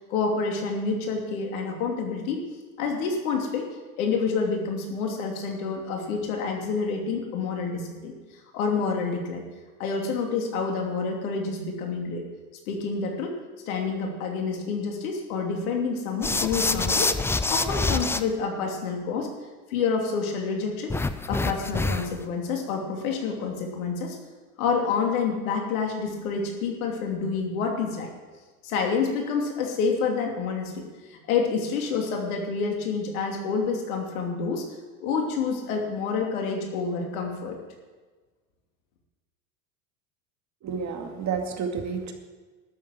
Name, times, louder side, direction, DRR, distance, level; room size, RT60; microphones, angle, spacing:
voice 1, 0.0-2.4 2.8-3.7 4.0-8.1 8.5-9.4 9.8-12.2 12.7-13.4 13.7-17.2 17.5-19.3 19.7-20.9 21.3-24.2 24.6-28.1 28.6-34.7 35.0-37.6, left 5 dB, 75° left, 2 dB, 2.9 m, -28 dB
sound 1, 16.2-18.2 20.9-22.2, left 3 dB, 5° left, 0.4 m, -26 dB
voice 2, 40.6-42.1, right 6 dB, 40° right, 4 dB, 2.2 m, -30 dB
12.5 x 7.4 x 9.0 m, 1.3 s
hypercardioid pair, 90°, 42 cm